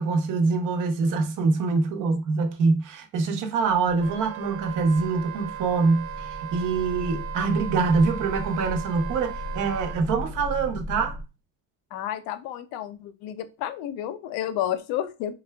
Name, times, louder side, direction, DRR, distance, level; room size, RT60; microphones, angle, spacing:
voice 1, 0.0-11.2, right 4 dB, 65° right, 1.0 m, -24 dB
sound 1, 3.7-11.2, left 1 dB, 35° left, 0.7 m, -38 dB
Wind instrument woodwind instrument, 4.0-10.0, right 11 dB, 45° right, 0.5 m, -37 dB
voice 2, 11.9-15.3, left 11 dB, 80° left, 0.7 m, -31 dB
4.1 x 3.5 x 2.2 m
cardioid pair, 105°, 34 cm